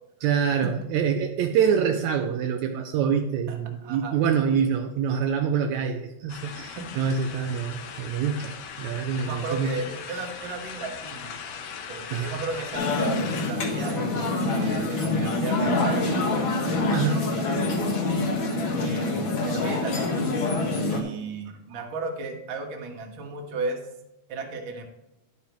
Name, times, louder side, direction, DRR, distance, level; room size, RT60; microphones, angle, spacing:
voice 1, 0.2-9.8 10.1-10.2 12.1-12.4 16.9-17.4, right 7 dB, 80° right, 5 dB, 1.9 m, -26 dB
voice 2, 3.8-4.2 6.8-7.0 9.2-11.4 11.9-17.5 18.8-20.2 20.9-23.8 24.3-24.8, right 3 dB, 45° right, 3 dB, 1.9 m, -35 dB
sound 1, 6.3-13.5, left 7 dB, 65° left, 1.9 m, -39 dB
sound 2, 12.7-21.0, left 2 dB, 50° left, 2.0 m, -26 dB
11.5 x 8.9 x 3.1 m, 0.92 s
omnidirectional pair, 3.6 m